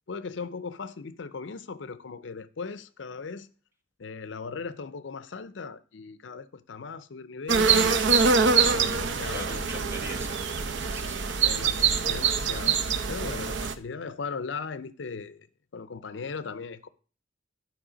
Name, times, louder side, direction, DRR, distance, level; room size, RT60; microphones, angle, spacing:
voice 1, 0.1-3.5 4.0-7.9 8.6-9.8 11.4-12.8 13.1-15.5 15.7-16.9, left 5 dB, 75° left, 0.6 m, -38 dB
sound 1, 7.5-13.7, right 5 dB, 75° right, 0.7 m, -24 dB
voice 2, 9.3-11.6, right 1 dB, 15° right, 1.3 m, -42 dB
11.5 x 4.6 x 5.0 m
head